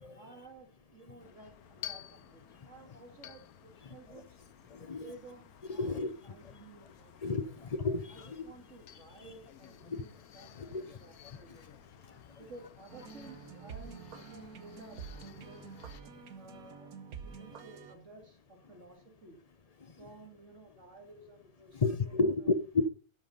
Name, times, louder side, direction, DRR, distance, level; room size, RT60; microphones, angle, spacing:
voice 1, 0.1-4.4 4.8-5.9 6.2-7.5 8.1-11.8 12.4-15.7 16.4-16.9 17.2-19.4 20.0-22.5, right 2 dB, 55° right, 2.2 m, -54 dB
sound 1, 1.2-16.0, left 11 dB, 75° left, 1.3 m, -53 dB
voice 2, 3.8-4.2 4.7-5.1 5.7-6.5 7.2-8.4 9.9-10.0 10.5-11.6 12.0-12.4 16.1-16.3 19.8-20.0 21.7-22.9, left 3 dB, 35° left, 0.6 m, -34 dB
sound 2, 12.9-18.0, right 6 dB, 75° right, 1.5 m, -48 dB
12.5 x 6.2 x 5.4 m
omnidirectional pair, 1.6 m